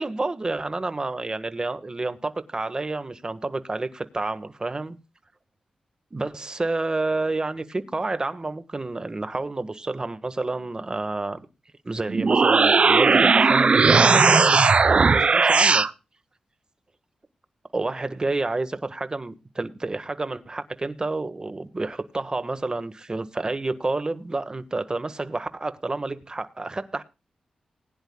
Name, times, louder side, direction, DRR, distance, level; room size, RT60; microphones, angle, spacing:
voice 1, 0.0-5.0 6.1-11.5 11.8-15.9 17.7-27.0, right 2 dB, 35° right, 1.6 m, -29 dB
sound 1, 12.1-15.9, right 4 dB, 55° right, 0.6 m, -17 dB
20.5 x 10.5 x 2.3 m
cardioid pair, 55°, 2 cm